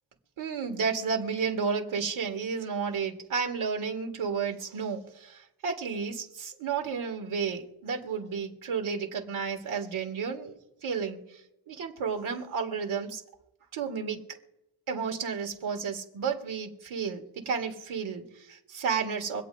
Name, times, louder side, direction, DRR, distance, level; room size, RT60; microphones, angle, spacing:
voice 1, 0.4-10.5 10.8-13.2 13.7-14.2 14.9-19.4, right 6 dB, 85° right, 3 dB, 1.7 m, -32 dB
25.0 x 8.4 x 2.6 m, 0.88 s
cardioid pair, 90°, 48 cm